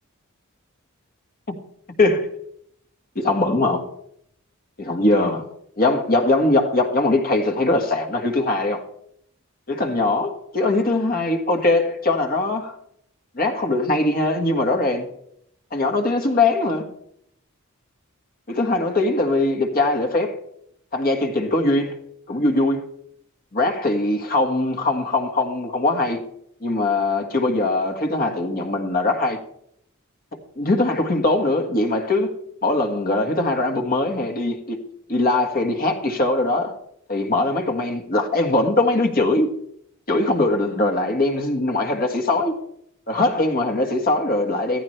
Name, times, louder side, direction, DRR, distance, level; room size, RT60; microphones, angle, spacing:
voice 1, 3.1-3.8 4.8-5.4 5.8-8.8 9.7-12.7 13.3-15.1 15.7-16.9 18.5-20.4 20.9-22.0 22.3-22.8 23.5-26.2 26.6-29.4 30.6-32.4 32.6-34.8 35.1-36.8 37.1-39.6 40.1-42.6 43.1-44.8, left 2 dB, 45° left, 1.7 m, -21 dB
15.0 x 14.5 x 3.3 m
head